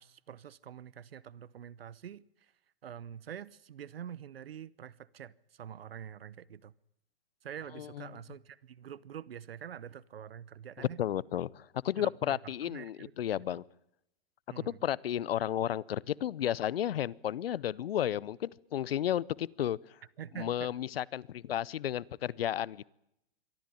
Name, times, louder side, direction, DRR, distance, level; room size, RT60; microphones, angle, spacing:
voice 1, 0.0-2.5 2.8-6.7 7.4-11.0 11.9-13.1 13.5-13.6 14.5-14.8 20.2-20.8, right 9 dB, 85° right, 0.9 m, -46 dB
voice 2, 10.8-13.6 14.7-19.8 20.4-22.9, left 11 dB, 80° left, 0.8 m, -33 dB
23.5 x 14.0 x 9.9 m
hypercardioid pair, 115°, 29 cm